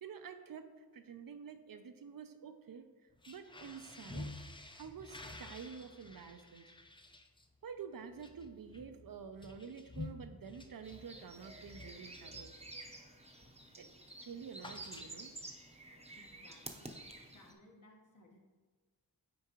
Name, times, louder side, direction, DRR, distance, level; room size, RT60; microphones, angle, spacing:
voice 1, 0.0-2.9 3.3-4.3 4.8-6.7 7.6-12.5 13.8-13.9 14.2-15.3, right 6 dB, 65° right, 8 dB, 0.6 m, -49 dB
sound 1, 3.1-13.0 13.4-13.7 13.9-15.5, left 2 dB, 15° left, 0.5 m, -51 dB
sound 2, 10.8-17.5, right 2 dB, 15° right, 0.8 m, -51 dB
voice 2, 16.1-17.0 17.3-18.4, left 2 dB, 55° left, 0 dB, 1.3 m, -61 dB
9.4 x 4.5 x 3.0 m, 1.4 s
wide cardioid pair, 80°, 37 cm